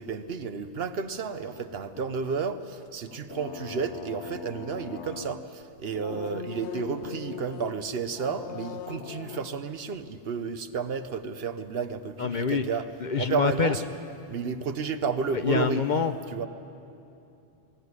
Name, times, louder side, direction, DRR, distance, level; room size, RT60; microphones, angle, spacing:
voice 1, 0.0-12.9 13.2-13.8 14.3-15.8 16.3-16.5, right 5 dB, 60° right, 11 dB, 1.0 m, -32 dB
sound 1, 1.5-5.6 5.9-7.8 8.1-9.6, left 7 dB, 75° left, 1.1 m, -41 dB
voice 2, 12.2-12.6 13.0-13.8 15.3-16.1, left 6 dB, 50° left, 10 dB, 0.8 m, -26 dB
21.0 x 16.0 x 9.7 m, 2.8 s
omnidirectional pair, 1.2 m